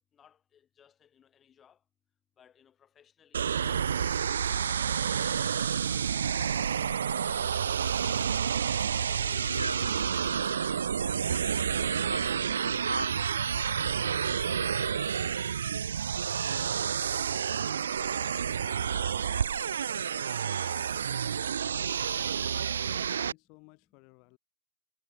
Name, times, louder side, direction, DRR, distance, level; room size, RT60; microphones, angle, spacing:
voice 1, 0.0-1.9 2.4-3.5 4.0-8.1 8.6-9.6 10.1-10.6 11.7-13.2 13.5-14.3 16.4-19.3, left 8 dB, 25° left, 6.6 m, -61 dB
sound 1, 3.3-23.3, right 7 dB, 70° right, 0.4 m, -29 dB
sound 2, 5.9-15.2, equal, 90° right, 1.0 m, -41 dB
voice 2, 22.2-24.4, left 32 dB, 45° left, 6.0 m, -56 dB
figure-of-eight pair, 90°, 0 cm